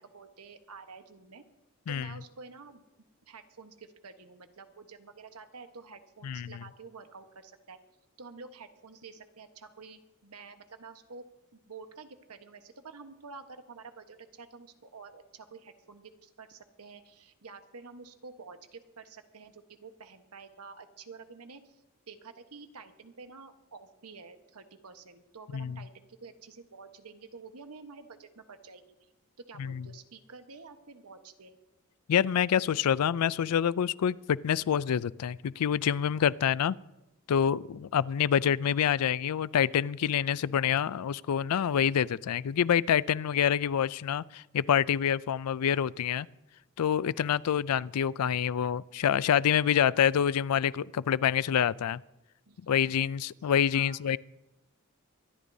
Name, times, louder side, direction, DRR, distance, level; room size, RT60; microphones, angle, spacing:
voice 1, 0.0-1.4 1.9-2.8 3.3-7.8 8.2-11.3 11.5-28.8 29.5-31.6 52.5-52.9 53.4-54.2, right 4 dB, 90° right, 1.2 m, -49 dB
voice 2, 6.2-6.6 25.5-25.8 29.6-29.9 32.1-36.8 37.3-46.3 46.8-52.0 52.7-54.2, left 8 dB, 85° left, 0.4 m, -27 dB
24.0 x 12.5 x 2.7 m
head